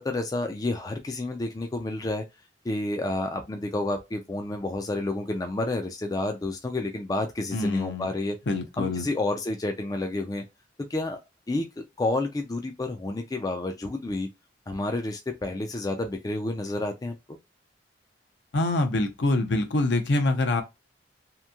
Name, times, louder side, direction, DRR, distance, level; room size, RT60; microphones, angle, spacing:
voice 1, 0.0-2.2 2.6-8.4 8.8-10.4 10.9-11.2 11.5-14.3 14.7-17.4, left 2 dB, 20° left, 0.3 m, -30 dB
voice 2, 7.5-8.1 8.5-9.1 18.5-20.6, left 2 dB, 65° left, 0.6 m, -25 dB
2.9 x 2.6 x 2.3 m
head